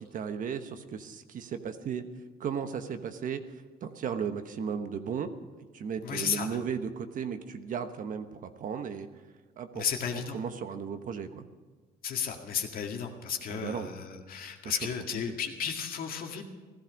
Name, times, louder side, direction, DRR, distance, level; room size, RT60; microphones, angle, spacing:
voice 1, 0.0-2.1 2.4-3.4 3.8-5.3 5.6-9.1 9.6-9.8 10.1-11.4 13.5-13.9 14.6-14.8 15.3-15.4, right 7 dB, 50° right, 8 dB, 1.1 m, -35 dB
voice 2, 6.0-6.5 9.7-10.4 12.0-16.4, left 7 dB, 60° left, 3 dB, 2.0 m, -33 dB
15.5 x 14.0 x 5.3 m, 1.4 s
cardioid pair, 110°, 17 cm